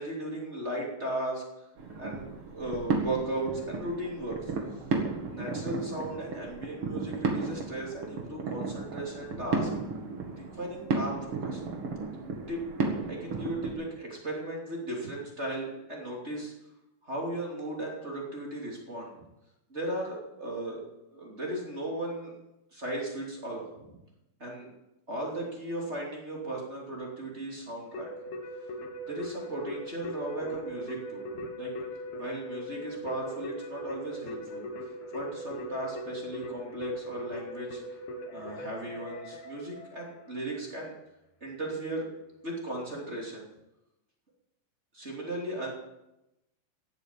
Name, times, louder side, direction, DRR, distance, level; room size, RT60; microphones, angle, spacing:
voice 1, 0.0-1.6 1.9-4.5 5.3-9.7 10.4-11.6 12.5-12.7 13.1-16.5 17.0-19.1 19.7-20.8 21.1-22.4 22.7-24.0 24.4-24.7 25.1-28.1 29.1-31.7 32.2-34.7 35.1-37.8 38.3-40.9 41.4-42.1 42.4-43.5 44.9-45.7, right 1 dB, 20° right, -2 dB, 2.8 m, -36 dB
sound 1, 1.8-13.7, right 4 dB, 45° right, 2.2 m, -34 dB
Keyboard (musical), 27.9-40.4, equal, 80° left, 3.6 m, -40 dB
16.0 x 8.2 x 7.3 m, 0.92 s
omnidirectional pair, 4.2 m